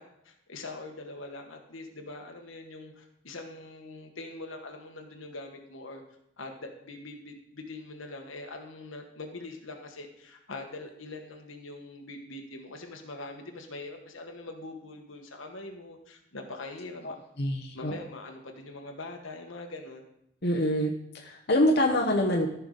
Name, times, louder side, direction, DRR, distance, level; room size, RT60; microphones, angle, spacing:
voice 1, 0.0-6.0 6.4-17.2 17.7-20.0, left 2 dB, 80° left, 3 dB, 1.4 m, -43 dB
voice 2, 17.0-17.9 20.4-22.5, left 1 dB, 55° left, 0 dB, 1.0 m, -26 dB
14.0 x 5.9 x 3.9 m, 0.77 s
head